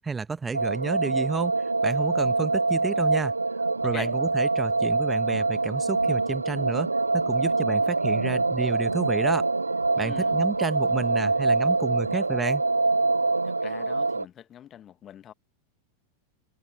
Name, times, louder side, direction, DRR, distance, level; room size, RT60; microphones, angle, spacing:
voice 1, 0.0-3.3 3.8-9.5 10.0-12.6, right 4 dB, 15° right, 1.4 m, -31 dB
sound 1, 0.5-14.2, right 3 dB, 80° right, 0.6 m, -25 dB
voice 2, 10.0-10.3 13.4-15.3, left 10 dB, 30° left, 1.4 m, -42 dB
figure-of-eight pair, 90°, 0 cm